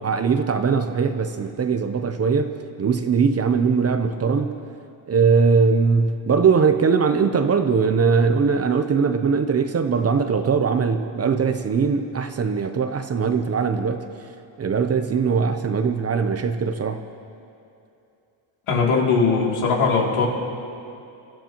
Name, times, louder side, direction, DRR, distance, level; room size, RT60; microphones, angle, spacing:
voice 1, 0.0-4.6 5.1-14.0 14.6-17.0, right 5 dB, 30° right, 8 dB, 0.7 m, -21 dB
voice 2, 18.7-20.3, left 4 dB, 75° left, -2 dB, 2.9 m, -20 dB
26.0 x 14.0 x 3.0 m, 2.6 s
cardioid pair, 130°, 49 cm